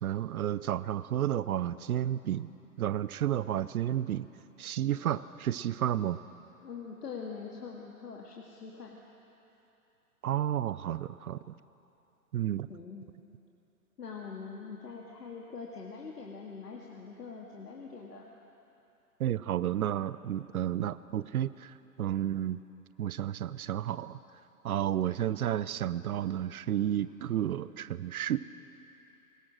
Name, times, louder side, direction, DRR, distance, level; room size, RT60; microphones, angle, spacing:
voice 1, 0.0-2.5 2.8-4.3 4.6-6.2 10.2-11.4 12.3-12.7 19.2-22.6 23.0-24.2 24.6-28.4, right 11 dB, 65° right, 16 dB, 0.7 m, -31 dB
voice 2, 6.6-9.0 12.7-13.0 14.0-18.3, left 5 dB, 80° left, -1 dB, 2.2 m, -43 dB
21.5 x 20.0 x 6.3 m, 3.0 s
hypercardioid pair, 125°, 47 cm